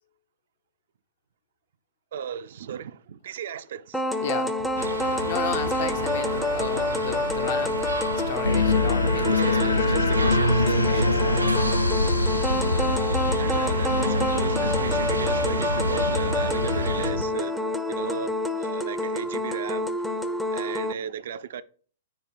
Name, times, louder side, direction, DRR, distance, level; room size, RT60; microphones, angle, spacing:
voice 1, 2.1-4.0 9.2-11.2 13.4-19.9 20.5-21.6, right 8 dB, 55° right, 0.3 m, -35 dB
sound 1, 3.9-20.9, left 1 dB, ahead, 0.5 m, -28 dB
voice 2, 4.2-4.8 5.2-8.0 8.3-11.6, left 9 dB, 50° left, 0.6 m, -35 dB
sound 2, 4.8-17.1, right 2 dB, 85° right, 0.7 m, -32 dB
sound 3, 8.4-17.2, left 2 dB, 85° left, 0.5 m, -25 dB
4.8 x 4.3 x 4.8 m
figure-of-eight pair, 110°, 0 cm